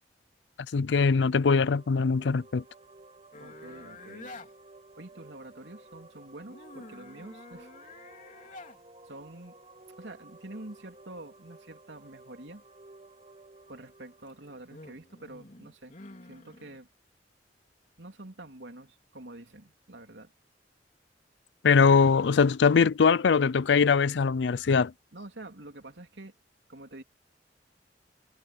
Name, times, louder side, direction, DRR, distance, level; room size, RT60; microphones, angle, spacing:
voice 1, 0.7-2.6 21.6-24.9, left 5 dB, 80° left, 0.5 m, -22 dB
sound 1, 1.0-15.7, right 2 dB, 35° right, 3.6 m, -54 dB
sound 2, 3.3-4.5 6.5-8.8 14.1-16.8, left 2 dB, 45° left, 3.6 m, -48 dB
voice 2, 3.4-4.4 5.0-8.1 9.0-9.6 10.0-12.6 13.7-15.9 16.2-16.9 18.0-20.3 25.1-26.4 26.7-27.0, right 2 dB, 85° right, 3.3 m, -47 dB
head